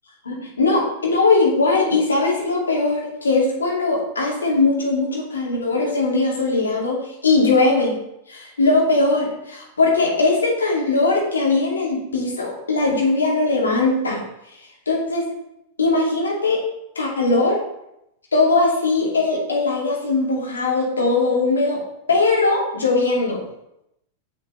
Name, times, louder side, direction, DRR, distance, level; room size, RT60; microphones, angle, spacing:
voice 1, 0.2-7.9 8.3-14.2 14.6-15.3 15.8-16.6 17.0-17.6 18.3-21.8 22.1-23.4, left 3 dB, 80° left, -3 dB, 2.4 m, -20 dB
7.0 x 6.9 x 3.3 m, 0.82 s
figure-of-eight pair, 90°, 0 cm